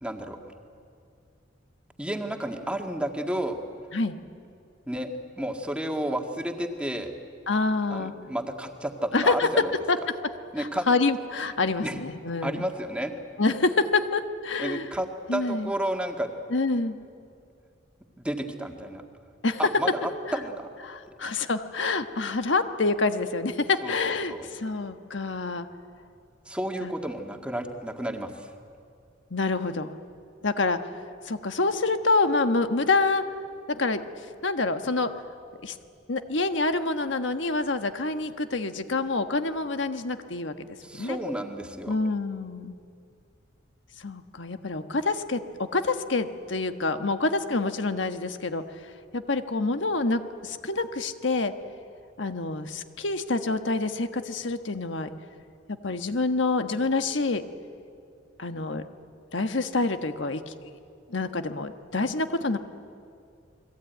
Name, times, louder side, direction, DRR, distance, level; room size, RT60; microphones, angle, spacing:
voice 1, 0.0-0.4 2.0-3.6 4.9-5.1 5.4-7.1 7.9-9.7 10.5-10.9 11.8-12.0 12.4-13.1 14.6-16.3 18.2-19.0 19.6-20.7 23.8-24.5 26.5-28.5 40.8-42.0, right 1 dB, 5° right, 3 dB, 1.9 m, -31 dB
voice 2, 7.5-8.1 9.1-9.5 9.9-10.0 10.6-12.6 13.4-14.9 15.3-15.7 16.5-17.0 19.4-19.6 20.9-25.7 26.8-26.9 29.3-29.9 30.4-30.8 31.3-33.2 33.7-34.0 34.4-35.1 35.6-35.7 36.1-40.5 41.0-41.2 41.9-42.7 44.0-48.6 49.1-51.5 52.2-55.1 55.8-57.4 58.4-58.8 59.3-60.7 61.1-62.6, left 3 dB, 80° left, 8 dB, 1.4 m, -27 dB
29.0 x 21.5 x 9.3 m, 2.4 s
head